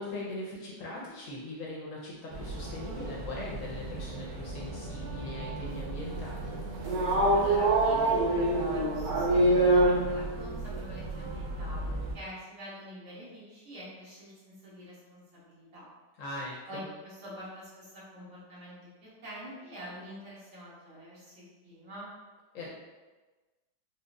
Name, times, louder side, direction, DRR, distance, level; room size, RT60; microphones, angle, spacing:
voice 1, 0.0-6.6 16.2-16.8 22.5-22.7, left 2 dB, 65° left, -4 dB, 0.8 m, -40 dB
sound 1, 2.3-12.1, right 2 dB, 85° right, 1.4 m, -28 dB
voice 2, 7.3-15.9 16.7-22.1, equal, 50° right, -9 dB, 1.5 m, -46 dB
4.4 x 2.1 x 2.5 m, 1.2 s
omnidirectional pair, 1.8 m